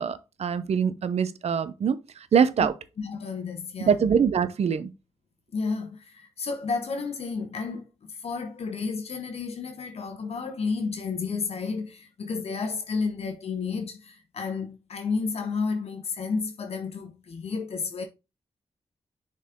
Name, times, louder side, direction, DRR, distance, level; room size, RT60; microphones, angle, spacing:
voice 1, 0.0-2.0 2.3-2.7 3.8-4.9, right 7 dB, 70° right, 0.7 m, -23 dB
voice 2, 3.0-4.0 5.5-7.9 8.2-18.0, left 4 dB, 70° left, 1.0 m, -31 dB
6.5 x 4.1 x 3.7 m
cardioid pair, 75°, 11 cm